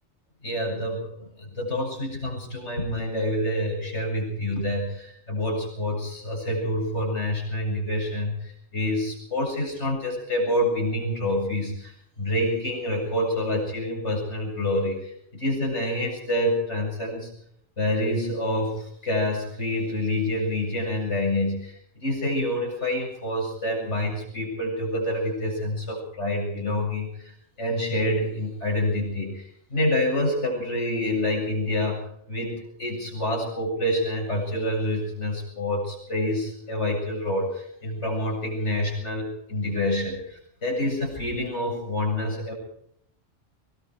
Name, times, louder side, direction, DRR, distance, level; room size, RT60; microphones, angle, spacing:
voice 1, 0.4-11.9 12.2-17.3 17.8-21.8 22.0-27.1 27.6-42.5, left 1 dB, 75° left, 0 dB, 8.2 m, -27 dB
23.5 x 23.0 x 4.8 m, 0.67 s
omnidirectional pair, 1.2 m